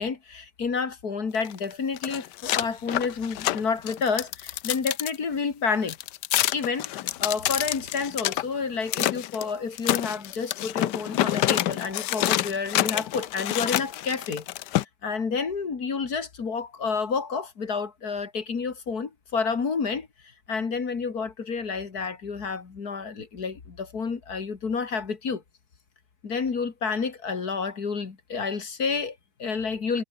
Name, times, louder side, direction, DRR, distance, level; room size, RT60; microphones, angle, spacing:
voice 1, 0.0-6.0 6.5-14.4 15.0-20.1 20.5-25.4 26.2-30.0, left 5 dB, 60° left, 2.7 m, -29 dB
sound 1, 1.3-5.1 5.9-8.4 8.9-9.4 9.8-14.8, left 14 dB, 80° left, 1.3 m, -27 dB
omnidirectional pair, 1.8 m